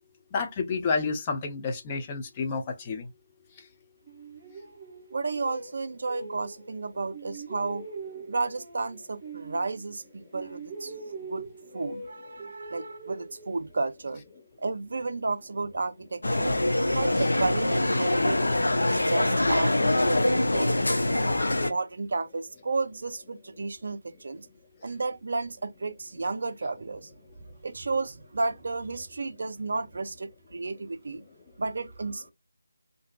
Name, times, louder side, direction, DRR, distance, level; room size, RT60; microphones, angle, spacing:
voice 1, 0.3-3.0, left 4 dB, 20° left, 0.5 m, -30 dB
sound 1, 4.1-6.8 7.1-10.1 10.3-13.9, right 4 dB, 10° right, 0.9 m, -43 dB
voice 2, 5.1-7.8 8.3-10.9 11.3-11.5 11.7-14.2 14.6-16.6 16.9-18.4 18.9-21.0 21.6-24.5 24.8-27.1 27.6-31.2 31.6-32.3, right 3 dB, 45° right, 0.5 m, -32 dB
sound 2, 16.2-21.7, left 1 dB, 65° left, 0.6 m, -24 dB
3.4 x 2.6 x 2.2 m
figure-of-eight pair, 160°, 0 cm